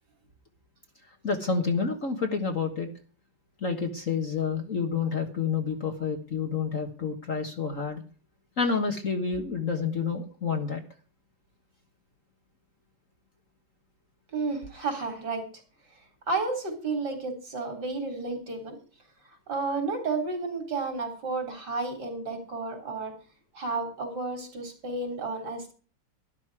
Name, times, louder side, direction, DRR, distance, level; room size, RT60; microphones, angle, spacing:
voice 1, 1.2-2.9 3.6-8.0 8.6-10.8, left 5 dB, 40° left, 5 dB, 1.6 m, -29 dB
voice 2, 14.3-15.4 16.3-18.8 19.2-23.1 23.5-25.7, right 3 dB, 50° right, 5 dB, 4.0 m, -32 dB
12.5 x 12.5 x 4.8 m, 0.38 s
omnidirectional pair, 2.3 m